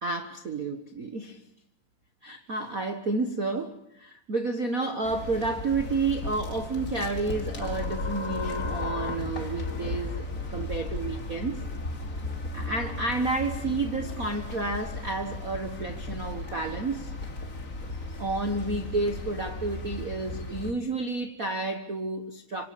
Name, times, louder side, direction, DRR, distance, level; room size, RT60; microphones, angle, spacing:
voice 1, 0.0-1.4 2.2-11.6 12.5-17.1 18.2-22.7, right 3 dB, 80° right, 0.7 m, -30 dB
sound 1, 5.0-20.7, left 2 dB, 25° left, 3.0 m, -36 dB
sound 2, 7.6-12.9, left 4 dB, 55° left, 0.7 m, -37 dB
26.0 x 25.5 x 8.5 m
omnidirectional pair, 3.8 m